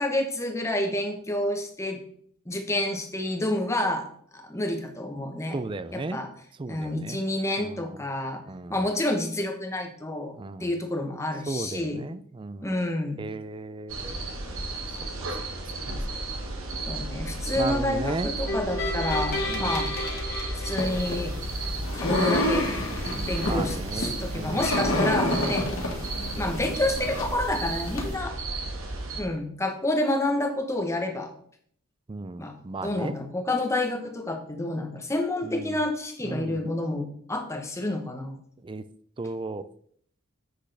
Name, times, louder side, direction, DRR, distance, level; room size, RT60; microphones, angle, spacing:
voice 1, 0.0-2.0 2.5-4.1 4.3-5.6 5.9-6.3 6.7-8.4 8.7-10.3 10.6-12.0 12.6-13.2 16.8-19.9 20.5-21.4 21.9-22.7 23.3-25.7 26.4-28.4 29.2-31.3 32.4-38.4, left 1 dB, 15° left, 4 dB, 1.0 m, -29 dB
voice 2, 5.5-6.2 6.6-7.2 7.6-8.0 8.5-8.8 10.3-10.7 11.5-12.8 13.2-14.2 15.2-15.4 16.3-16.5 17.6-18.3 19.5-19.8 23.1-24.8 32.1-33.2 35.4-35.7 36.2-36.6 38.6-38.8 39.2-39.7, right 3 dB, 25° right, 13 dB, 0.4 m, -35 dB
sound 1, 13.9-29.2, right 2 dB, 80° right, 1.3 m, -33 dB
sound 2, 18.5-21.7, left 1 dB, 45° left, 1.8 m, -32 dB
sound 3, 20.8-28.1, left 1 dB, 80° left, 1.7 m, -29 dB
7.7 x 6.2 x 3.3 m, 0.62 s
head